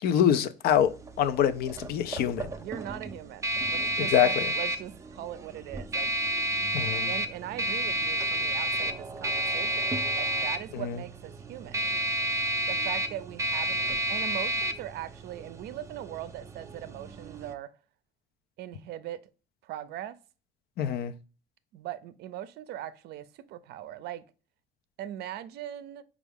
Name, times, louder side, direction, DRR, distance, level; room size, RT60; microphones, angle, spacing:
voice 1, 0.0-0.9 1.2-2.5 4.0-4.4 6.7-7.1 10.7-11.0 20.8-21.1, left 9 dB, 65° left, 0.4 m, -25 dB
sound 1, 0.7-17.5, right 1 dB, 20° right, 0.4 m, -31 dB
voice 2, 2.6-6.1 6.8-11.9 12.7-17.7 18.6-19.3 19.6-20.2 21.7-24.2 25.0-26.0, right 12 dB, 75° right, 0.4 m, -40 dB
4.7 x 2.4 x 3.4 m
cardioid pair, 110°, 17 cm